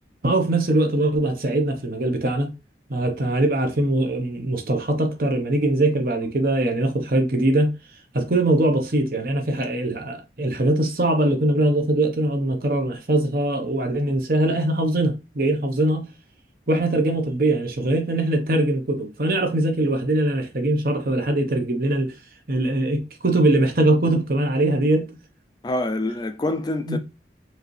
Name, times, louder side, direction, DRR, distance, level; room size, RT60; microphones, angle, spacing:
voice 1, 0.2-2.5 2.9-7.7 8.1-16.1 16.7-22.1 22.5-25.1 26.8-27.0, right 1 dB, 55° right, 1.0 m, -22 dB
voice 2, 25.6-27.0, left 1 dB, 25° left, 0.3 m, -26 dB
4.7 x 2.7 x 3.1 m
head